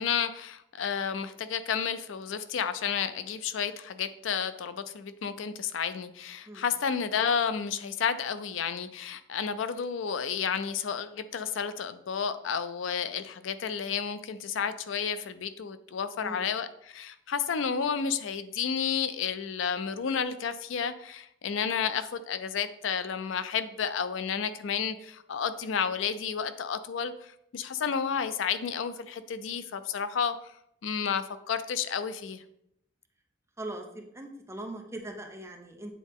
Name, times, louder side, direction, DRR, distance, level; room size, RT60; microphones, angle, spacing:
voice 1, 0.0-30.4 30.8-32.4, left 7 dB, 80° left, 12 dB, 0.4 m, -31 dB
voice 2, 16.2-16.5 33.6-36.0, right 1 dB, 15° right, 2 dB, 0.8 m, -40 dB
8.4 x 4.0 x 3.6 m, 0.76 s
head